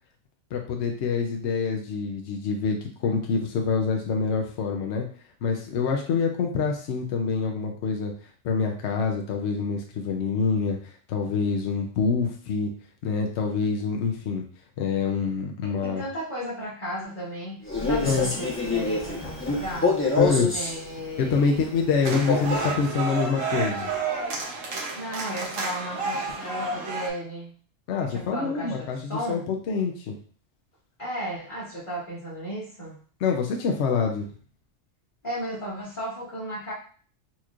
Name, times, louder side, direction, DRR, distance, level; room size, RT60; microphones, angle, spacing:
voice 1, 0.5-5.0 5.4-8.1 8.4-12.7 13.0-14.4 14.8-16.0 18.0-18.3 20.2-20.5 21.2-23.9 27.9-30.2 33.2-34.2, left 5 dB, 65° left, 1 dB, 0.9 m, -26 dB
voice 2, 15.6-19.9 20.5-21.7 22.1-22.2 24.9-27.5 28.1-29.4 31.0-33.0 35.2-36.7, equal, 40° left, -9 dB, 1.7 m, -35 dB
Male speech man speaking, 17.6-20.8 22.1-22.8, left 3 dB, 10° left, 0.8 m, -26 dB
sound 1, 22.0-27.1, right 3 dB, 75° right, 1.2 m, -30 dB
4.3 x 2.9 x 2.4 m, 0.43 s
omnidirectional pair, 1.3 m